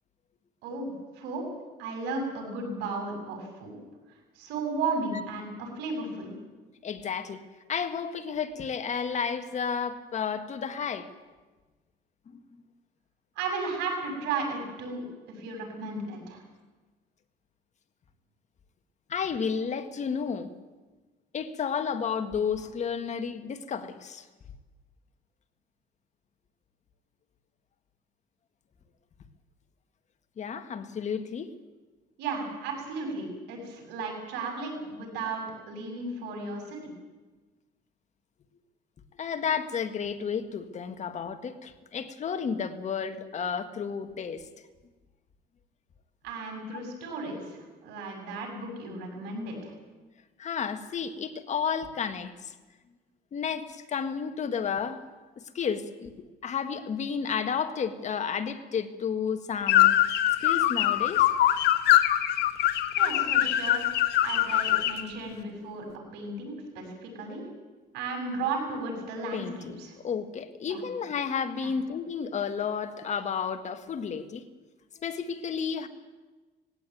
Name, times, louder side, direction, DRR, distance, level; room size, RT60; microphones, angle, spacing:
voice 1, 1.2-1.5 1.8-3.8 4.4-6.3 13.4-15.0 15.3-16.4 32.2-36.8 46.2-49.7 63.0-63.9 64.2-65.9 66.1-67.4 67.9-69.9 70.7-70.8 71.6-71.7, right 3 dB, 90° right, 2 dB, 7.4 m, -34 dB
voice 2, 6.8-7.4 7.7-11.1 12.3-12.4 19.1-20.5 21.3-24.3 30.4-31.5 39.2-44.5 46.7-46.8 50.4-52.5 53.3-55.0 55.4-56.1 56.4-60.0 60.4-61.3 69.3-74.4 75.0-75.9, left 6 dB, 45° left, 9 dB, 1.7 m, -32 dB
sound 1, 59.7-65.0, left 13 dB, 80° left, 1.4 m, -23 dB
19.0 x 17.0 x 9.3 m, 1.3 s
cardioid pair, 110°, 17 cm